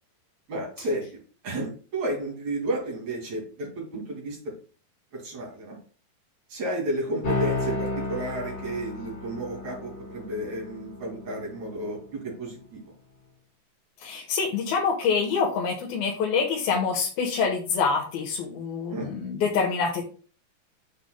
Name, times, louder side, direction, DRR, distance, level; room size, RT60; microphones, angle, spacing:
voice 1, 0.5-1.1 1.4-4.5 5.1-5.8 6.5-12.8 18.9-19.1, right 1 dB, 50° right, -1 dB, 3.4 m, -32 dB
sound 1, 7.2-12.2, left 2 dB, 40° left, 4.2 m, -33 dB
voice 2, 14.0-20.0, left 5 dB, 75° left, -2 dB, 2.8 m, -26 dB
9.0 x 6.7 x 2.2 m, 0.39 s
omnidirectional pair, 4.5 m